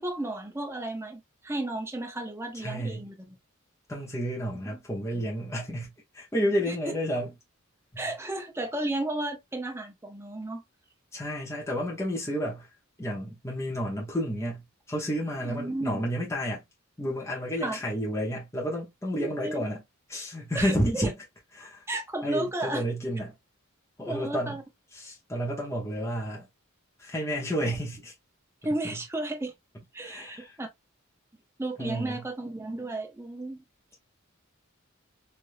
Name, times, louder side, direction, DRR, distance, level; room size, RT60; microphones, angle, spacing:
voice 1, 0.0-3.4 5.1-5.2 6.7-6.8 8.0-10.6 15.4-16.0 17.6-17.8 19.2-19.6 20.5-21.1 21.9-22.8 24.1-24.6 28.6-29.5 29.9-30.7 31.6-33.6, right 2 dB, 10° right, 0.7 m, -33 dB
voice 2, 2.5-3.1 3.9-7.3 7.9-8.1 11.1-12.7 13.0-14.6 14.9-16.6 17.0-19.8 20.1-21.2 21.5-21.8 22.2-23.3 24.0-24.6 24.9-26.5 27.0-28.1 28.8-29.0 30.0-30.6 31.8-32.2, equal, 15° left, 0.9 m, -31 dB
3.3 x 2.6 x 2.5 m
head